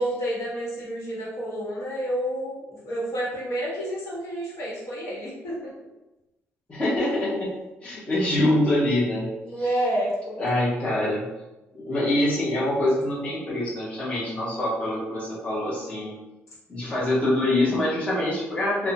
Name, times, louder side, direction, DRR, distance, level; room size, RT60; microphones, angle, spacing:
voice 1, 0.0-5.7 9.4-10.5 10.8-11.0, right 1 dB, 80° left, -6 dB, 1.1 m, -29 dB
voice 2, 6.7-7.5 7.8-9.3 9.6-9.7 10.4-11.2 11.7-16.1 16.7-18.9, left 1 dB, 25° left, -8 dB, 0.9 m, -25 dB
2.6 x 2.2 x 2.6 m, 0.97 s
cardioid pair, 135°, 5 cm